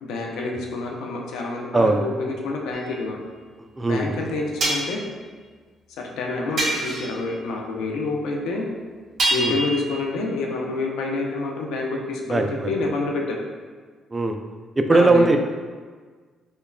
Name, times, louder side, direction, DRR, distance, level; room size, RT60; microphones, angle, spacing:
voice 1, 0.0-3.2 3.9-5.0 6.0-8.6 9.3-13.4 14.9-15.3, left 3 dB, 85° left, 0 dB, 0.5 m, -28 dB
sound 1, 2.7-2.9 4.6-5.0 6.6-7.2 9.2-10.1, right 2 dB, 55° right, 1.1 m, -25 dB
voice 2, 3.6-4.3 9.4-9.6 12.3-12.8 14.1-14.4 14.8-15.4, right 2 dB, 20° right, 5 dB, 0.3 m, -20 dB
5.4 x 2.2 x 2.2 m, 1.5 s
cardioid pair, 90°, 0 cm